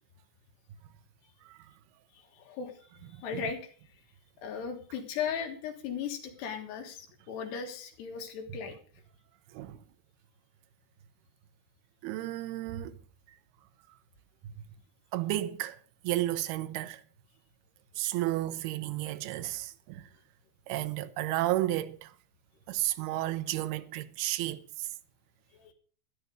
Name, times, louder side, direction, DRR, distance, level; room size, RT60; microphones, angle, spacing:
voice 1, 2.1-2.8 3.1-3.7 4.4-8.8 25.5-25.7, left 7 dB, 75° left, 3.6 m, -37 dB
voice 2, 3.1-3.4 9.5-9.8 12.0-13.0 15.1-15.8 16.0-17.0 18.0-20.1 20.7-22.2 22.7-24.9, right 15 dB, 80° right, 2.6 m, -32 dB
13.5 x 11.0 x 5.1 m
omnidirectional pair, 5.0 m